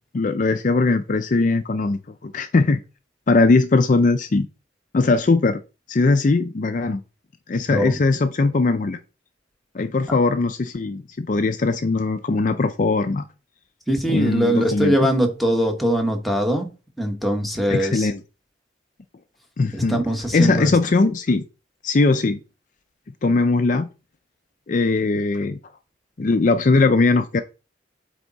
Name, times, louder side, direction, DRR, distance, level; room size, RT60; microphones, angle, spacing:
voice 1, 0.1-2.8 3.3-4.5 4.9-5.6 5.9-7.0 7.5-9.0 9.7-13.2 14.1-15.1 17.7-18.2 19.6-20.0 20.3-21.4 21.8-22.4 23.2-23.9 24.7-25.6 26.2-27.4, left 3 dB, 45° left, 0.4 m, -20 dB
voice 2, 7.7-8.0 10.1-10.2 13.9-16.7 17.0-18.1 19.7-20.7, equal, ahead, 1.1 m, -22 dB
8.1 x 3.6 x 4.0 m
head